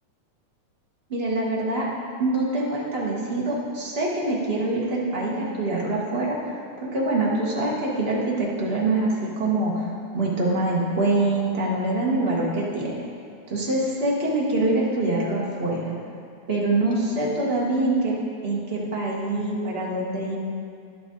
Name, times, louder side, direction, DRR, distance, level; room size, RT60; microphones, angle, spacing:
voice 1, 1.1-1.9 2.2-6.4 6.8-9.9 10.1-13.0 13.5-15.9 16.5-18.1 18.4-20.4, right 2 dB, 35° right, -4 dB, 0.9 m, -24 dB
11.0 x 8.1 x 3.9 m, 2.3 s
omnidirectional pair, 3.3 m